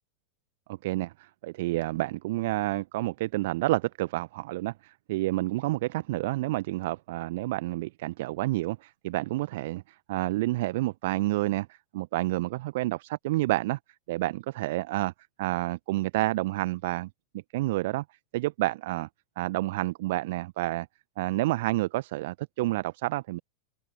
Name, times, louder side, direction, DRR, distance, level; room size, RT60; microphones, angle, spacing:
voice 1, 0.7-13.8 14.1-15.1 15.4-17.1 17.5-18.0 18.3-19.1 19.4-20.9 21.2-23.4, right 18 dB, 50° right, 1.0 m, -29 dB
open air
figure-of-eight pair, 90°, 0 cm